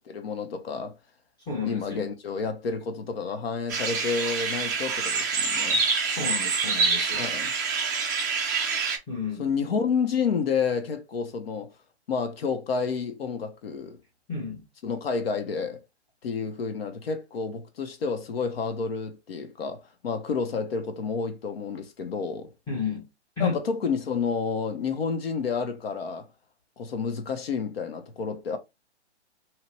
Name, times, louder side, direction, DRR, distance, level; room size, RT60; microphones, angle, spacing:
voice 1, 0.1-1.0 1.6-5.8 7.1-7.5 9.4-11.7 12.1-14.0 14.8-15.8 16.2-22.5 23.4-26.3 26.8-28.6, left 5 dB, 60° left, 0.8 m, -30 dB
voice 2, 1.5-2.1 6.0-7.2 9.1-9.4 14.3-14.6 22.7-23.1 23.4-23.6, left 5 dB, 10° left, 0.7 m, -32 dB
sound 1, 3.7-9.0, right 4 dB, 20° right, 0.3 m, -26 dB
3.0 x 2.4 x 3.2 m
hypercardioid pair, 135°, 34 cm